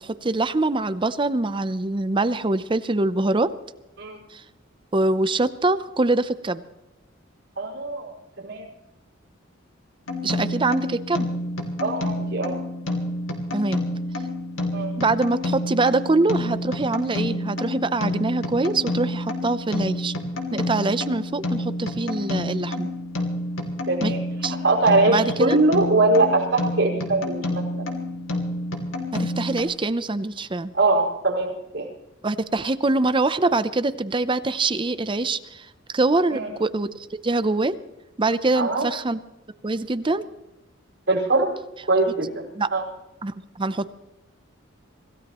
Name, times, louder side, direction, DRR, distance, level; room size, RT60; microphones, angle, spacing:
voice 1, 0.0-3.5 4.3-4.4 4.9-6.6 10.2-11.3 13.5-13.8 15.0-20.1 20.5-22.9 24.0-24.1 24.4-24.6 25.1-25.6 29.1-30.7 32.2-37.7 38.2-39.2 39.6-40.2 42.6-42.7 43.2-43.9, right 2 dB, 25° right, 13 dB, 0.6 m, -24 dB
voice 2, 7.6-8.7 11.8-12.6 14.7-14.9 23.9-24.2 24.6-27.9 30.7-31.9 36.3-36.5 38.5-38.9 41.1-41.5 41.9-42.4 42.7-42.8, right 2 dB, 65° right, -2 dB, 5.3 m, -22 dB
sound 1, 10.1-29.6, left 1 dB, 75° left, 2.8 m, -29 dB
26.0 x 16.0 x 3.0 m, 0.98 s
head